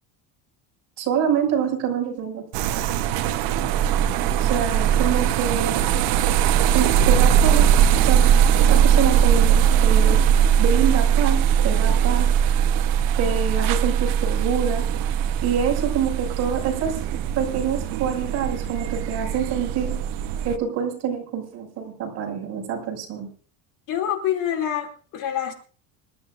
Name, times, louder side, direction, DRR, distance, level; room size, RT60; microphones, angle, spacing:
voice 1, 1.0-2.8 4.4-5.8 6.7-7.7 8.0-8.2 8.5-10.2 10.6-12.3 13.2-14.8 15.4-17.0 17.3-20.0 20.4-23.3, right 7 dB, 40° right, 6.5 m, -26 dB
sound 1, 2.5-20.6, right 8 dB, 60° right, 1.0 m, -20 dB
voice 2, 23.9-25.5, left 10 dB, 50° left, 2.9 m, -26 dB
26.5 x 12.5 x 2.6 m
cardioid pair, 170°, 40 cm